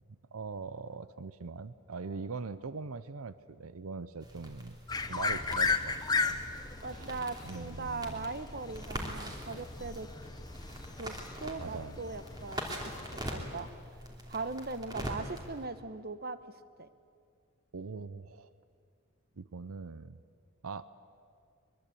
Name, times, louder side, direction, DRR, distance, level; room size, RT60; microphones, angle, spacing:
voice 1, 0.0-4.8 5.1-6.4 6.9-7.1 7.4-8.3 11.6-12.0 17.7-18.5 19.4-20.2 20.6-20.8, right 4 dB, 80° right, 15 dB, 0.7 m, -42 dB
sound 1, 4.2-15.7, equal, 20° right, 3.0 m, -43 dB
sound 2, 4.9-13.2, left 4 dB, 20° left, 0.9 m, -36 dB
voice 2, 6.8-10.1 11.0-13.7 14.3-16.4 16.8-16.9, right 3 dB, 45° right, 13 dB, 1.0 m, -40 dB
23.0 x 22.5 x 8.5 m, 2.3 s
head